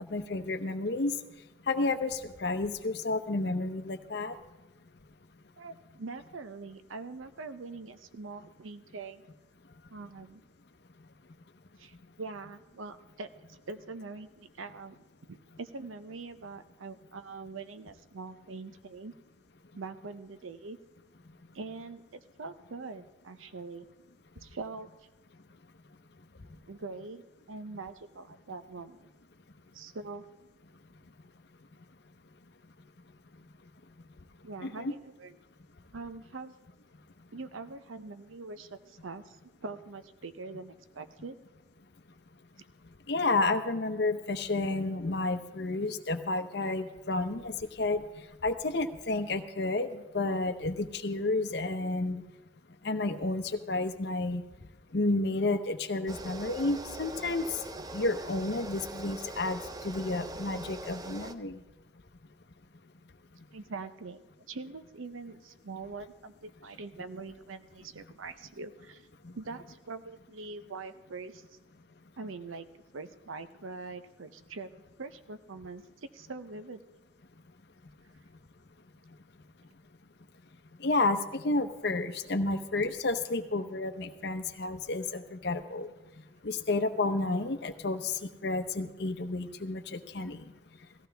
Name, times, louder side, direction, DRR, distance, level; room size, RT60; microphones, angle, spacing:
voice 1, 0.1-1.1 1.7-4.4 34.6-34.9 43.1-48.0 48.4-49.9 50.1-52.2 52.8-54.4 54.9-57.4 57.9-59.6 59.8-61.6 80.8-85.9 86.4-90.4, left 2 dB, 55° left, 8 dB, 0.8 m, -31 dB
voice 2, 5.6-9.2 9.9-10.4 11.8-15.0 15.3-19.1 19.7-20.8 21.5-23.9 24.4-24.9 26.7-29.1 29.7-30.2 34.4-35.4 35.9-36.5 37.3-41.4 49.8-49.9 63.5-64.2 64.5-69.1 69.3-71.4 72.2-72.7 72.9-74.7 75.0-76.8, right 3 dB, 90° right, 11 dB, 0.7 m, -43 dB
sound 1, 56.1-61.3, right 1 dB, 20° right, 0.5 m, -42 dB
17.0 x 14.5 x 3.4 m, 1.1 s
head